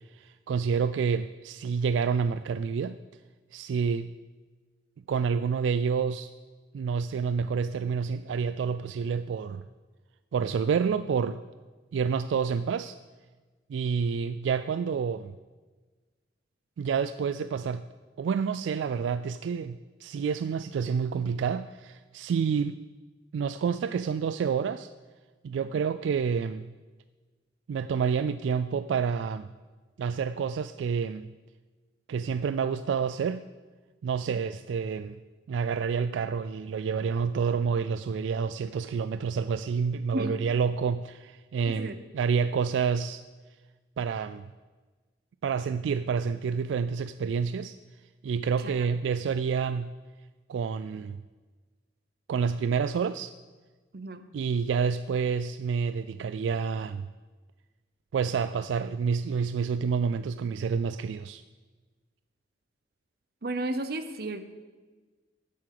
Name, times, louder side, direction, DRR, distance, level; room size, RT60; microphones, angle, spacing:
voice 1, 0.1-3.0 3.5-4.1 5.1-6.3 6.7-9.6 10.3-11.4 11.9-13.0 13.7-15.3 16.8-17.8 18.2-22.8 23.3-24.9 25.4-26.7 27.7-29.5 30.0-31.3 32.1-33.4 34.0-35.2 35.5-43.2 44.0-44.5 45.4-47.8 48.2-49.9 50.5-51.2 52.3-53.3 54.3-57.1 58.1-61.4, right 6 dB, 85° right, 12 dB, 0.3 m, -28 dB
voice 2, 41.7-42.0 48.6-48.9 53.9-54.2 63.4-64.5, right 2 dB, 55° right, 10 dB, 0.7 m, -33 dB
7.6 x 7.6 x 7.7 m, 1.3 s
head